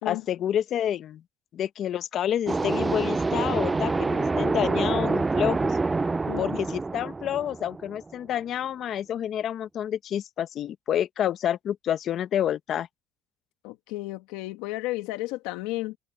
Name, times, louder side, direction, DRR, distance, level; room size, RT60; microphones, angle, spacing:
voice 1, 0.0-1.2 1.5-5.7 6.4-12.9, left 10 dB, 55° left, 1.2 m, -28 dB
sound 1, 2.5-8.1, right 3 dB, 20° right, 0.4 m, -26 dB
voice 2, 6.3-6.6 13.6-16.0, left 19 dB, 90° left, 1.7 m, -33 dB
supercardioid pair, 100°, 0 cm